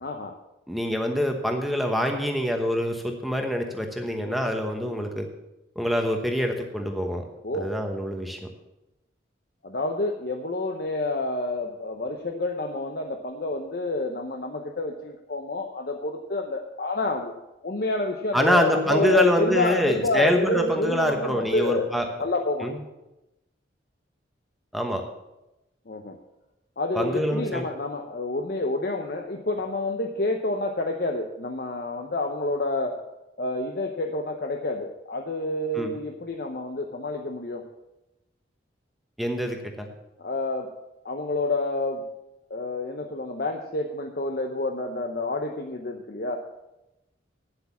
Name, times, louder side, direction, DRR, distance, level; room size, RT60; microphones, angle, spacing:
voice 1, 0.0-0.4 7.4-7.7 9.6-17.4 17.6-21.9 22.2-22.7 25.9-26.2 26.8-33.0 33.4-37.6 40.2-40.7 41.0-42.0 42.5-46.4, left 2 dB, 50° left, 3 dB, 0.8 m, -28 dB
voice 2, 0.7-5.3 5.8-7.2 7.5-8.4 18.3-22.1 22.6-22.8 24.7-25.0 26.9-27.6 35.7-35.9 39.2-39.9, equal, ahead, 3 dB, 1.0 m, -25 dB
9.6 x 7.9 x 7.1 m, 0.96 s
head